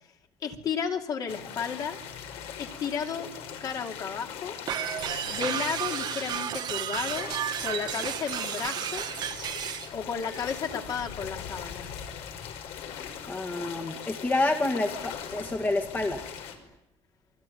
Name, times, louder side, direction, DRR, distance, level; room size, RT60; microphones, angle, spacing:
voice 1, 0.4-2.0 2.6-3.3 3.6-4.6 5.3-7.3 7.6-9.1 9.9-12.0, left 6 dB, 35° left, 4 dB, 2.7 m, -33 dB
sound 1, 1.3-16.6, left 8 dB, 65° left, 5.3 m, -40 dB
sound 2, 4.7-9.9, right 11 dB, 40° right, 1.3 m, -32 dB
voice 2, 13.3-16.3, left 2 dB, 15° left, 3 dB, 2.1 m, -28 dB
28.0 x 22.5 x 9.3 m, 0.86 s
cardioid pair, 170°, 11 cm